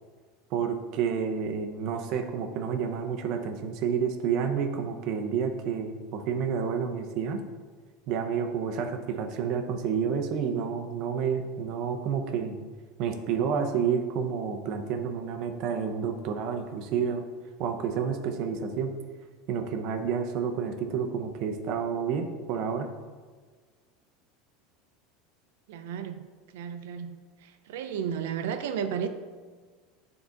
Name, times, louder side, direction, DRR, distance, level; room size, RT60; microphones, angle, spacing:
voice 1, 0.5-7.4 8.1-12.6 13.0-17.2 17.6-18.9 19.5-22.9, right 7 dB, 40° right, 6 dB, 0.6 m, -29 dB
voice 2, 25.7-26.2 26.5-29.1, right 8 dB, 80° right, 9 dB, 0.6 m, -33 dB
9.4 x 3.8 x 3.9 m, 1.5 s
supercardioid pair, 175°, 0 cm